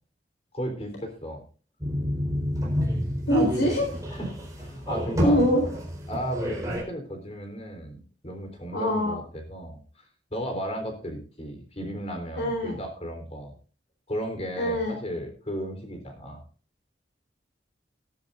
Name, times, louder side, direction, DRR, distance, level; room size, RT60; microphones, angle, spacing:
voice 1, 0.5-1.4 4.1-5.4 6.1-10.1 10.3-13.5 14.1-16.4, equal, 35° left, 5 dB, 3.8 m, -35 dB
sound 1, 1.8-6.8, equal, 20° right, 4.3 m, -29 dB
voice 2, 3.3-3.9 5.2-5.6 8.7-9.2 12.4-12.7 14.6-15.0, equal, 80° left, 1 dB, 4.0 m, -23 dB
19.0 x 10.5 x 2.6 m, 0.39 s
head